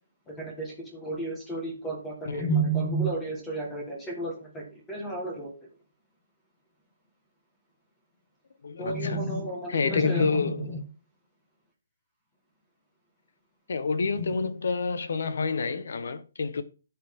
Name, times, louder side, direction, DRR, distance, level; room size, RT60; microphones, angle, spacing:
voice 1, 0.3-5.5 8.8-10.8 14.2-14.5, right 2 dB, 10° left, 1.6 m, -31 dB
voice 2, 8.6-9.2 9.7-10.6 13.7-16.6, left 4 dB, 60° left, 1.1 m, -28 dB
11.0 x 5.9 x 3.7 m
hypercardioid pair, 170°, 0 cm